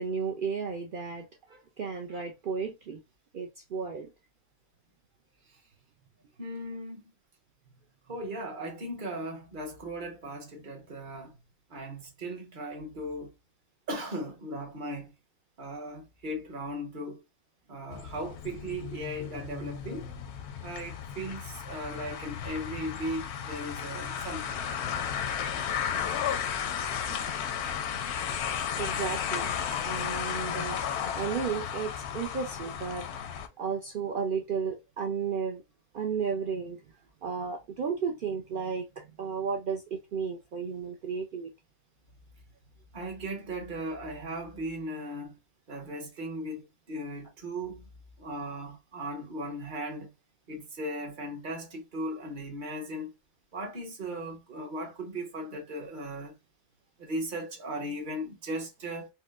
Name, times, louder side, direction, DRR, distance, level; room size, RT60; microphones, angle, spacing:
voice 1, 0.0-3.0 3.3-4.1 27.1-27.2 28.8-29.5 29.9-30.8 31.1-33.1 33.6-35.6 35.9-36.8 37.2-41.5, right 6 dB, 70° right, 0.5 m, -33 dB
voice 2, 6.4-7.1 8.1-11.4 11.7-13.3 13.9-15.1 15.6-17.2 17.7-20.1 20.6-24.6 42.9-45.3 45.7-47.9 48.2-50.1 50.5-53.1 53.5-56.3 57.0-59.1, right 1 dB, 40° right, 1.0 m, -37 dB
sound 1, 17.9-33.5, left 8 dB, 65° left, 0.7 m, -34 dB
4.4 x 2.1 x 2.4 m
omnidirectional pair, 1.5 m